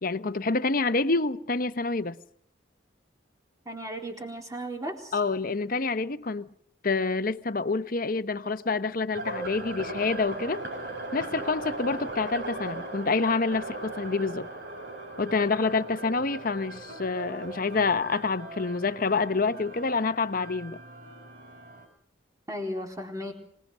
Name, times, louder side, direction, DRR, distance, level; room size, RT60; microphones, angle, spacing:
voice 1, 0.0-2.2 5.1-6.5 6.8-10.7 11.1-14.5 15.2-20.8, left 4 dB, 50° left, 0.9 m, -27 dB
voice 2, 3.7-5.1 22.5-23.3, equal, 20° right, 4.1 m, -35 dB
sound 1, 9.1-21.9, right 2 dB, 60° right, 7.6 m, -39 dB
25.5 x 19.5 x 6.3 m
head